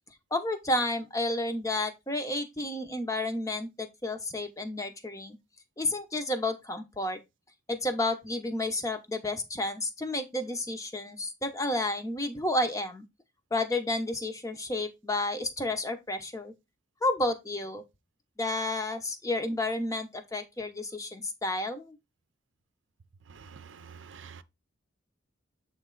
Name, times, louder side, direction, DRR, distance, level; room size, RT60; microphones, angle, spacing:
voice 1, 0.3-5.4 5.8-7.2 7.7-13.0 13.5-16.5 17.0-17.8 18.4-22.0, left 2 dB, 15° left, 0.8 m, -31 dB
voice 2, 23.3-24.4, right 6 dB, 75° right, 0.6 m, -48 dB
7.7 x 3.2 x 3.8 m
head